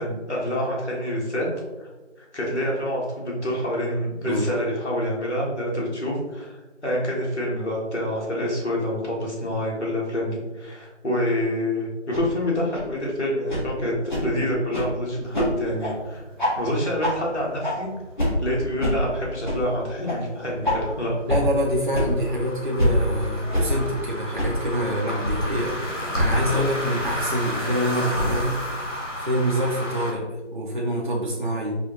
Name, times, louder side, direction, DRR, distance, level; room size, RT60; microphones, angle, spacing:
voice 1, 0.0-1.5 1.8-1.9 2.2-13.9 14.2-16.2 16.5-17.9 18.4-21.1, left 1 dB, 65° left, -4 dB, 1.4 m, -27 dB
voice 2, 4.2-4.6 21.3-25.8 26.2-28.6 29.2-30.2 30.5-31.8, equal, 45° right, -4 dB, 0.5 m, -26 dB
sound 1, 12.1-12.2 12.7-12.8 13.5-13.6 14.1-14.2 14.7-14.8 15.3-15.4 15.8-15.9 16.4-16.5 17.0-17.1 17.6-17.7 18.2-18.3 18.8-18.9 19.4-19.6 20.0-20.2 20.6-20.7 21.3-21.4 21.9-22.1 22.8-22.9 23.5-23.6 24.4-24.5 25.2-25.4 26.1-26.3 27.0-27.1 28.1-28.3, left 1 dB, 40° left, 1.1 m, -24 dB
sound 2, 15.2-30.1, equal, 85° left, 1.3 m, -34 dB
4.8 x 2.3 x 3.0 m, 1.2 s
figure-of-eight pair, 175°, 36 cm